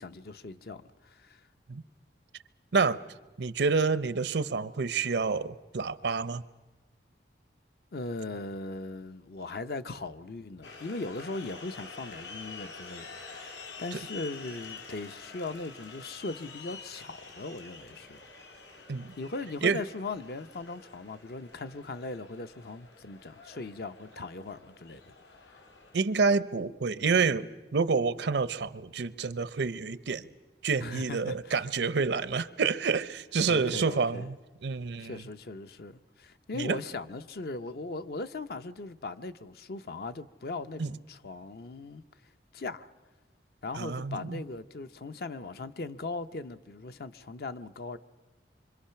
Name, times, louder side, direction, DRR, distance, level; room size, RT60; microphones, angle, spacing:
voice 1, 0.0-1.4 7.9-18.2 18.7-18.8 19.2-25.1 25.5-25.7 30.8-31.6 33.5-34.3 35.0-42.0 42.5-42.9 43.6-48.0, left 3 dB, 60° left, 0.6 m, -39 dB
voice 2, 3.4-6.4 13.9-14.0 18.9-19.1 19.6-19.8 25.9-30.3 30.6-34.4 34.6-35.2 36.5-36.8 40.8-40.9 43.8-44.4, right 4 dB, 75° right, 0.6 m, -28 dB
sound 1, 10.6-26.1, left 4 dB, 80° left, 2.2 m, -48 dB
25.5 x 25.0 x 5.7 m
head